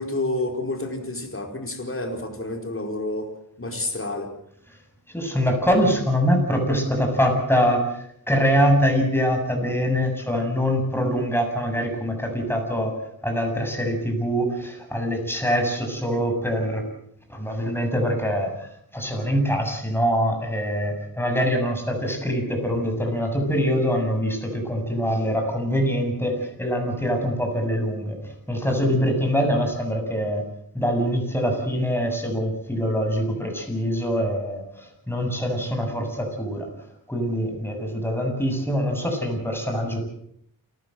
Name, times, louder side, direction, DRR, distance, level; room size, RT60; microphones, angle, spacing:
voice 1, 0.0-3.3 3.6-4.3, left 2 dB, 35° left, 4 dB, 4.7 m, -29 dB
voice 2, 5.1-13.0 13.2-16.8 17.3-18.7 18.9-30.4 30.7-36.7 37.1-40.0, equal, 5° left, 3 dB, 7.7 m, -24 dB
29.0 x 14.5 x 7.9 m, 0.71 s
wide cardioid pair, 75°, 37 cm